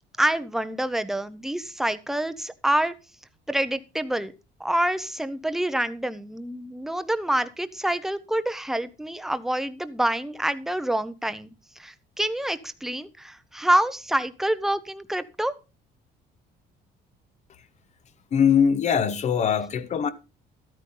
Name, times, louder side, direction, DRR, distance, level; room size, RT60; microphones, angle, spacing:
voice 1, 0.2-2.9 3.5-4.3 4.6-11.5 11.8-15.5, right 1 dB, ahead, 0.7 m, -27 dB
voice 2, 18.3-20.1, left 7 dB, 40° left, 0.9 m, -21 dB
13.0 x 9.2 x 3.8 m
cardioid pair, 140°, 19 cm